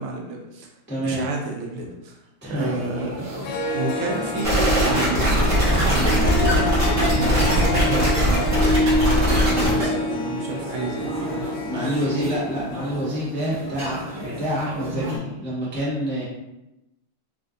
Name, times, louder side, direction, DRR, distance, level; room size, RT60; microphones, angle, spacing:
voice 1, 0.0-0.7 1.0-2.2 2.5-3.4 3.7-5.5 6.0-11.7, right 3 dB, 85° right, 1 dB, 1.5 m, -31 dB
voice 2, 0.9-1.3 2.4-2.7 11.6-16.2, right 1 dB, 15° left, -9 dB, 0.4 m, -27 dB
sound 1, 2.5-15.2, equal, 55° right, 0.6 m, -33 dB
Harp, 3.1-3.2 3.4-13.0, left 2 dB, 80° left, 1.3 m, -27 dB
sound 2, 4.4-9.8, equal, 40° right, 1.1 m, -20 dB
4.1 x 2.5 x 2.5 m, 0.92 s
omnidirectional pair, 2.4 m